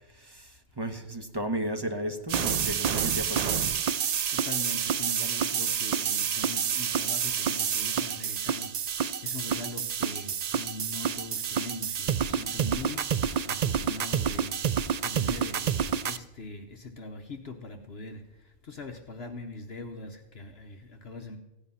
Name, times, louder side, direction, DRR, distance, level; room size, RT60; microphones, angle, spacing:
voice 1, 0.1-3.7, right 1 dB, 20° right, 6 dB, 1.2 m, -34 dB
sound 1, 2.3-16.2, right 8 dB, 85° right, 0.3 m, -28 dB
voice 2, 4.0-21.4, left 2 dB, 55° left, 4 dB, 1.2 m, -42 dB
16.0 x 10.5 x 5.7 m, 1.0 s
omnidirectional pair, 1.3 m